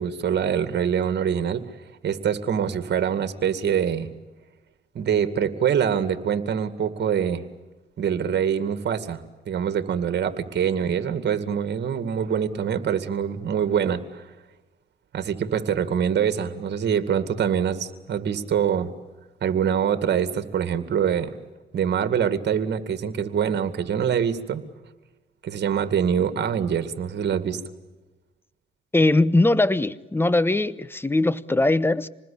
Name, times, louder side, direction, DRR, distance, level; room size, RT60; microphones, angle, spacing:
voice 1, 0.0-1.6 2.0-4.1 4.9-7.4 8.0-9.2 9.5-14.2 15.1-18.9 19.4-21.3 21.7-24.6 25.4-27.6, right 8 dB, 60° right, 2.2 m, -24 dB
voice 2, 28.9-32.1, left 2 dB, 10° left, 1.0 m, -20 dB
27.0 x 20.5 x 8.6 m
cardioid pair, 90°, 20 cm